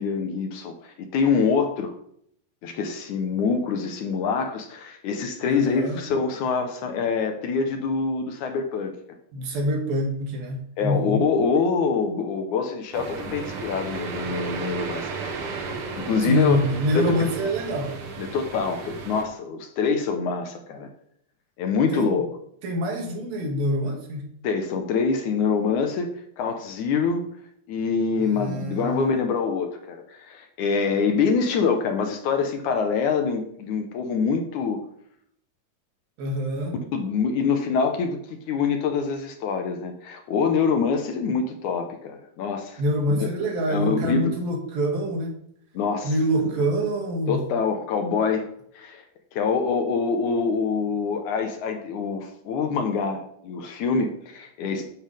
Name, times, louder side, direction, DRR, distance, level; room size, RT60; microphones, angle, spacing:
voice 1, 0.0-1.9 2.6-8.9 10.8-15.4 15.9-16.6 17.0-17.2 18.2-20.9 21.6-22.3 24.4-27.3 27.7-34.8 36.9-42.8 43.7-44.3 45.7-46.1 47.3-48.5 48.8-49.0 49.3-54.9, left 5 dB, 70° left, 5 dB, 2.3 m, -25 dB
voice 2, 5.4-6.0 9.3-11.3 16.2-17.9 21.9-22.2 22.6-24.3 28.2-29.1 36.2-36.8 42.8-45.4 46.0-47.4, equal, 85° right, 1 dB, 3.9 m, -25 dB
sound 1, 12.9-19.2, right 5 dB, 55° right, 1.6 m, -34 dB
11.5 x 8.8 x 3.5 m, 0.69 s
omnidirectional pair, 4.0 m